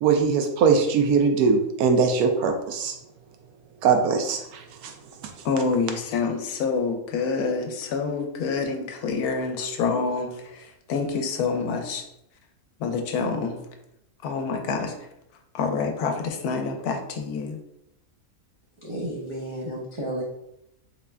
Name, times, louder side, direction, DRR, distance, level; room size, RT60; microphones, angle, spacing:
voice 1, 0.0-2.9 3.8-4.9, right 5 dB, 85° right, 5 dB, 1.1 m, -21 dB
voice 2, 5.4-12.0 12.8-13.6 14.2-14.9 15.5-17.6, left 4 dB, 85° left, 5 dB, 1.1 m, -27 dB
voice 3, 18.8-20.2, right 1 dB, 50° right, -6 dB, 0.3 m, -32 dB
3.5 x 2.1 x 3.4 m, 0.80 s
omnidirectional pair, 1.6 m